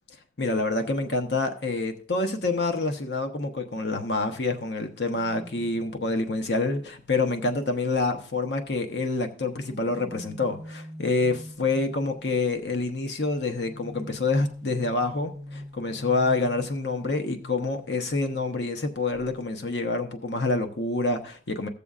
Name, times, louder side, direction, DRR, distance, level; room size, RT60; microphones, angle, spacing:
voice 1, 0.4-21.7, left 3 dB, 80° left, 0.9 m, -27 dB
sound 1, 5.1-8.7 9.3-12.6 13.6-18.8 19.1-19.4, left 1 dB, 20° left, 1.0 m, -45 dB
17.0 x 6.8 x 2.4 m
head